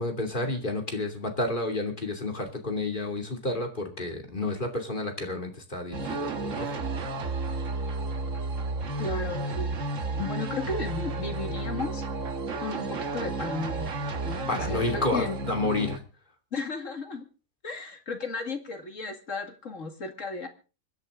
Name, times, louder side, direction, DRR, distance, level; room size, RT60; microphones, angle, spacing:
voice 1, 0.0-6.7 14.5-16.0, left 2 dB, 30° left, 3 dB, 2.9 m, -30 dB
sound 1, 5.9-16.0, right 2 dB, 55° right, 1.7 m, -32 dB
voice 2, 9.0-9.8 10.2-12.0 12.6-13.9 14.2-15.4 16.5-17.3 17.6-20.5, left 3 dB, 55° left, 5 dB, 2.4 m, -34 dB
25.0 x 10.5 x 3.7 m, 0.35 s
omnidirectional pair, 1.6 m